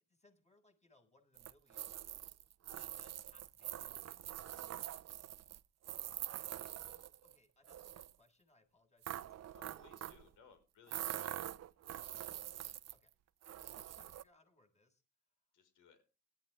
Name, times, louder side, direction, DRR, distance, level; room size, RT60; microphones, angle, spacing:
voice 1, 0.1-2.0 2.6-4.1 4.3-4.7 6.3-10.3 11.7-13.1 13.5-15.0, left 2 dB, 20° left, 3 dB, 7.5 m, -70 dB
sound 1, 1.4-7.4 7.7-8.1 9.0-10.3 10.9-13.1 13.4-14.2, right 11 dB, 60° right, 0.8 m, -45 dB
voice 2, 9.5-11.4 15.5-16.0, left 6 dB, 90° left, 8 dB, 5.7 m, -63 dB
17.5 x 13.5 x 3.8 m, 0.33 s
cardioid pair, 90°, 30 cm